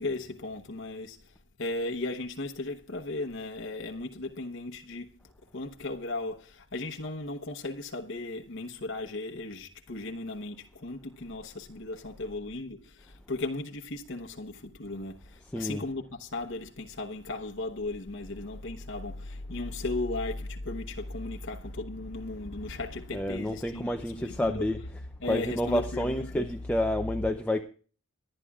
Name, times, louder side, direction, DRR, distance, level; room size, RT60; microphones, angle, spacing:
voice 1, 0.0-5.1 5.5-24.7 25.2-26.5, left 2 dB, 60° left, 1.0 m, -36 dB
voice 2, 15.5-15.8 23.1-24.8 25.2-27.6, left 1 dB, 5° left, 0.6 m, -29 dB
23.5 x 9.9 x 2.4 m
head